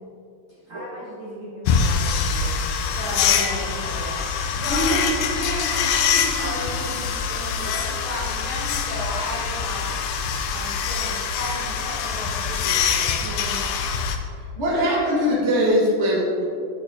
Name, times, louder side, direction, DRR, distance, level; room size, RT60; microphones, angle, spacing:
voice 1, 0.5-2.7 3.1-4.3 13.2-13.6, equal, 50° right, -8 dB, 1.4 m, -37 dB
sound 1, 1.7-14.2, left 6 dB, 80° left, 1.9 m, -24 dB
voice 2, 2.9-3.4 4.5-9.9 10.5-13.2, equal, 50° left, -7 dB, 1.7 m, -33 dB
voice 3, 4.7-5.0 14.6-16.4, equal, 30° right, -7 dB, 1.3 m, -21 dB
8.6 x 8.6 x 2.9 m, 2.5 s
omnidirectional pair, 4.2 m